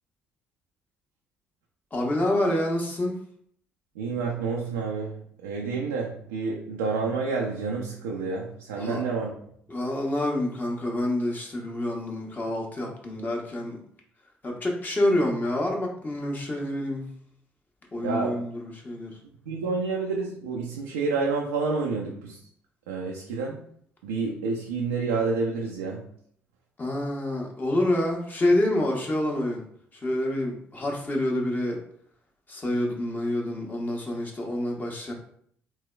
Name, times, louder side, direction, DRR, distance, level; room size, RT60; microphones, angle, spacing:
voice 1, 1.9-3.2 8.8-9.0 9.7-13.8 14.4-17.1 17.9-19.2 26.8-29.6 29.9-31.8 32.5-35.1, left 1 dB, 30° left, 0 dB, 1.0 m, -27 dB
voice 2, 4.0-9.3 18.0-18.4 19.5-22.4 22.9-23.7 24.0-26.1, right 4 dB, 85° right, -1 dB, 0.4 m, -29 dB
3.2 x 3.0 x 2.2 m, 0.65 s
hypercardioid pair, 50°, 6 cm